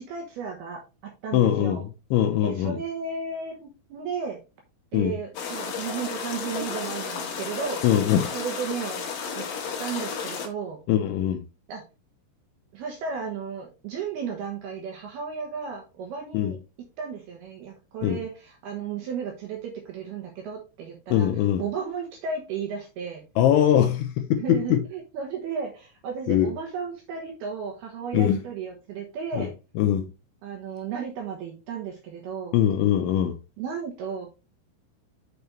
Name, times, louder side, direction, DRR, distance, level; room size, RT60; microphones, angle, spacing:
voice 1, 0.0-1.8 2.4-4.4 4.9-7.8 8.3-9.0 9.4-9.5 9.8-10.8 11.7-11.8 12.7-16.6 17.0-21.3 21.6-23.2 24.4-29.5 30.4-32.6 33.6-34.3, right 6 dB, 70° right, 2.5 m, -34 dB
voice 2, 1.3-2.8 4.9-5.1 7.8-8.4 10.9-11.4 16.3-16.5 18.0-18.2 21.1-21.6 23.4-24.8 26.3-26.5 28.1-28.4 29.3-29.5 29.8-30.1 32.5-33.4, left 10 dB, 80° left, 2.8 m, -22 dB
sound 1, 5.3-10.5, left 6 dB, 60° left, 2.3 m, -33 dB
6.8 x 6.6 x 3.1 m
omnidirectional pair, 5.9 m